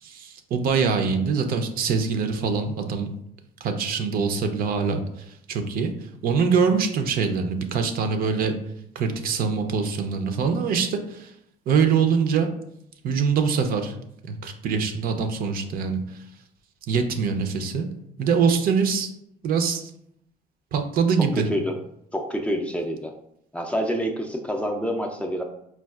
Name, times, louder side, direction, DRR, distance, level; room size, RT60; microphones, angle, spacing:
voice 1, 0.0-3.1 3.6-5.0 5.3-5.9 6.2-8.5 8.9-11.3 11.7-12.5 13.0-13.9 14.2-16.2 16.9-17.9 18.2-19.1 19.4-19.9 20.7-21.5, right 5 dB, 60° right, 6 dB, 0.5 m, -24 dB
voice 2, 22.1-23.1 23.5-25.4, equal, 5° left, 2 dB, 0.4 m, -27 dB
4.4 x 2.3 x 2.3 m, 0.74 s
cardioid pair, 110°, 17 cm